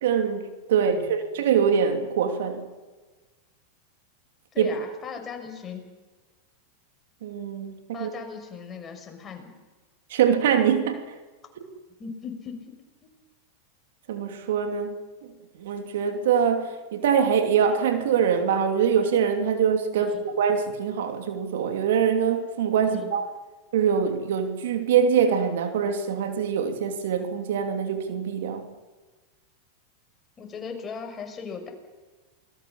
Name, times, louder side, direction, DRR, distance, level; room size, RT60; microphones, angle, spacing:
voice 1, 0.0-2.6 4.6-4.7 7.2-8.1 10.1-11.0 11.6-11.7 14.1-15.0 15.6-23.3 23.7-28.7, right 7 dB, 70° right, 2.9 m, -24 dB
voice 2, 4.5-5.8 7.9-9.6 12.0-12.6 13.0-13.1 20.1-20.2 22.9-23.1 30.4-31.7, left 6 dB, 25° left, 6.2 m, -38 dB
28.5 x 20.5 x 7.3 m
hypercardioid pair, 100°, 0 cm